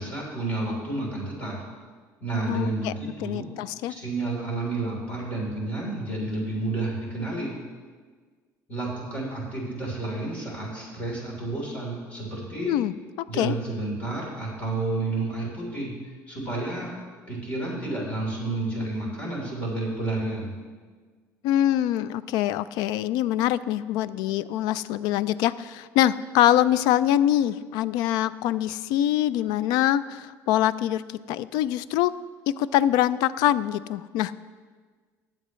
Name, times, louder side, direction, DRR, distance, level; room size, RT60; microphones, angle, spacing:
voice 1, 0.0-1.6 2.2-3.5 3.9-7.5 8.7-12.7 13.3-15.9 16.3-16.9 17.3-20.5, right 2 dB, 20° left, -3 dB, 3.6 m, -30 dB
voice 2, 2.5-2.9 3.2-3.9 12.7-12.9 13.4-13.5 21.4-31.0 31.3-32.1 32.5-34.4, left 12 dB, 80° left, 17 dB, 0.4 m, -24 dB
19.0 x 7.7 x 3.1 m, 1.5 s
cardioid pair, 160°, 7 cm